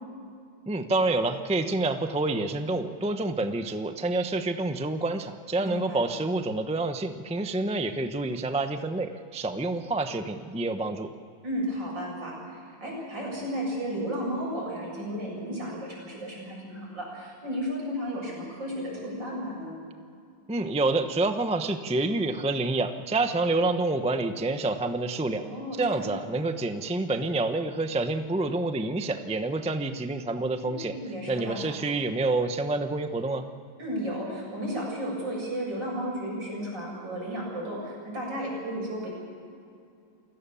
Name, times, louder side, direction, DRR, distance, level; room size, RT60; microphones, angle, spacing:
voice 1, 0.7-11.1 20.5-25.4 25.8-30.9 31.3-33.5, right 2 dB, 10° right, 7 dB, 0.3 m, -28 dB
voice 2, 5.6-6.1 11.4-19.7 25.4-26.2 30.6-31.6 33.8-39.1, equal, 60° right, -3 dB, 8.5 m, -34 dB
28.5 x 17.5 x 7.1 m, 2.4 s
omnidirectional pair, 2.2 m